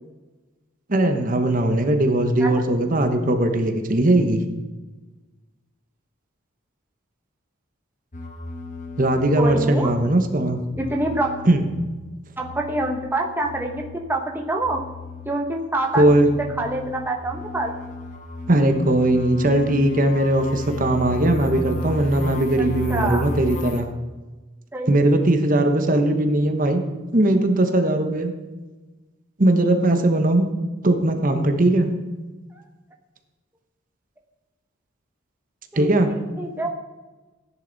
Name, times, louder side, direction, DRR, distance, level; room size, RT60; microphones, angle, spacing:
voice 1, 0.9-4.4 9.0-10.6 11.5-11.6 15.9-16.3 18.5-23.9 24.9-26.8 27.1-28.3 29.4-30.5 30.8-31.9 35.7-36.1, right 1 dB, 40° right, 6 dB, 1.0 m, -19 dB
sound 1, 8.1-10.3 10.7-14.2 14.5-23.8, left 1 dB, 35° left, 1.1 m, -34 dB
voice 2, 9.4-9.9 10.7-11.3 12.4-14.8 15.2-16.0 16.6-17.7 22.6-23.3 24.7-25.0 32.5-32.6 35.7-36.0 36.4-36.7, right 2 dB, 10° right, 1 dB, 1.0 m, -26 dB
15.0 x 10.5 x 4.0 m, 1.2 s
head